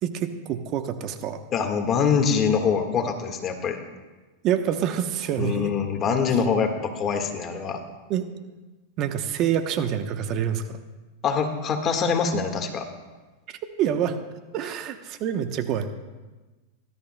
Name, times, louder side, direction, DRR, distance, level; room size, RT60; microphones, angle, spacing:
voice 1, 0.0-1.4 4.4-5.7 8.1-8.3 9.0-10.8 13.8-14.2 14.5-15.9, right 9 dB, 45° right, 8 dB, 0.9 m, -26 dB
voice 2, 1.5-3.8 5.4-7.8 11.2-12.9, left 6 dB, 35° left, 4 dB, 1.6 m, -24 dB
20.0 x 12.5 x 2.3 m, 1.2 s
hypercardioid pair, 110°, 0 cm